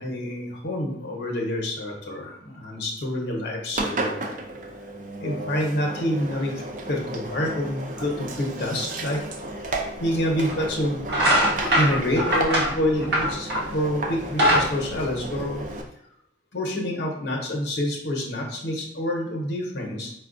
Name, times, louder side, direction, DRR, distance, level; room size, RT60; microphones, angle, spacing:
voice 1, 0.0-4.3 5.2-6.5 6.8-9.2 9.5-11.0 11.7-15.7 16.5-20.1, left 1 dB, 75° left, 0 dB, 0.8 m, -27 dB
Engine, 3.7-15.8, right 2 dB, 45° right, 0.4 m, -34 dB
sound 1, 10.5-10.7 11.0-13.8 14.1-15.8, equal, 65° right, 0.9 m, -22 dB
4.4 x 2.3 x 2.5 m, 0.72 s
head